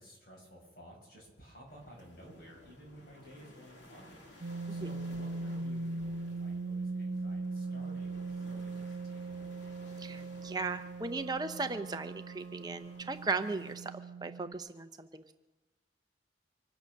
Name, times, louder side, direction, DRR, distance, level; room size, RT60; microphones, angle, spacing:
voice 1, 0.0-9.6, equal, 55° left, -1 dB, 6.8 m, -54 dB
sound 1, 1.7-13.8, left 1 dB, 85° left, 3.0 m, -58 dB
sound 2, 4.4-14.5, right 3 dB, 65° right, 0.8 m, -40 dB
voice 2, 10.0-13.9 14.2-15.3, right 3 dB, 20° right, 8 dB, 0.5 m, -37 dB
25.0 x 9.0 x 6.3 m, 1.1 s
head